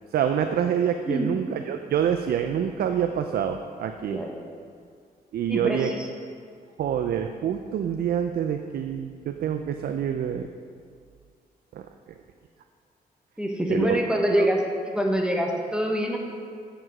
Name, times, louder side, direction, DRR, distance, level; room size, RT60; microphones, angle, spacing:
voice 1, 0.1-4.2 5.3-5.9 6.8-10.5 11.7-11.9 13.7-14.5, right 8 dB, 70° right, 7 dB, 0.4 m, -26 dB
voice 2, 5.5-6.1 13.4-14.6 14.9-16.2, equal, 5° right, 1 dB, 0.9 m, -25 dB
7.7 x 5.0 x 6.0 m, 2.2 s
cardioid pair, 95°, 16 cm